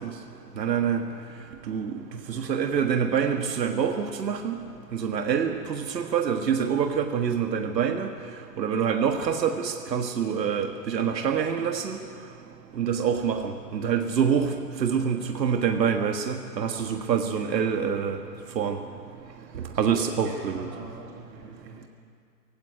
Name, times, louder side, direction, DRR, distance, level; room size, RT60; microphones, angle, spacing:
voice 1, 0.6-1.0 1.7-1.9 2.3-4.6 5.0-8.1 8.6-12.0 12.8-13.4 13.7-14.5 14.8-18.2 18.6-18.8 19.8-20.7, right 7 dB, 80° right, 5 dB, 1.6 m, -26 dB
voice 2, 19.7-21.9, right 2 dB, 20° right, -2 dB, 5.2 m, -43 dB
18.5 x 16.0 x 8.9 m, 2.3 s
hypercardioid pair, 160°, 49 cm